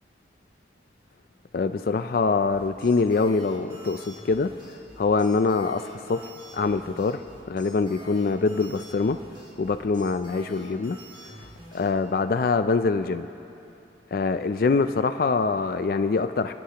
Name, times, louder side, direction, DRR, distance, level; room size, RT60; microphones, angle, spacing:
voice 1, 1.5-4.5 5.0-7.2 7.5-9.2 9.6-11.0 11.7-13.3 14.1-16.5, left 4 dB, 50° left, 10 dB, 0.3 m, -24 dB
sound 1, 2.5-11.9, right 1 dB, 25° right, 2.4 m, -47 dB
30.0 x 11.5 x 2.9 m, 2.8 s
head